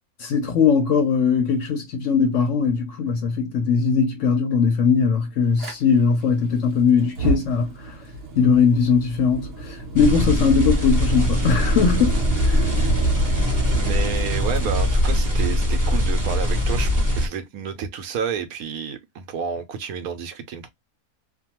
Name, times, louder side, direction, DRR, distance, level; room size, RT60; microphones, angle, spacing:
voice 1, 0.2-7.9 8.4-12.7, left 5 dB, 65° left, 0.8 m, -20 dB
Fire, 5.6-5.7 7.0-16.1, right 1 dB, 45° right, 1.0 m, -30 dB
sound 1, 10.0-17.3, equal, 20° right, 0.6 m, -21 dB
voice 2, 13.8-20.7, right 6 dB, 75° right, 1.0 m, -30 dB
2.6 x 2.2 x 2.8 m
omnidirectional pair, 1.6 m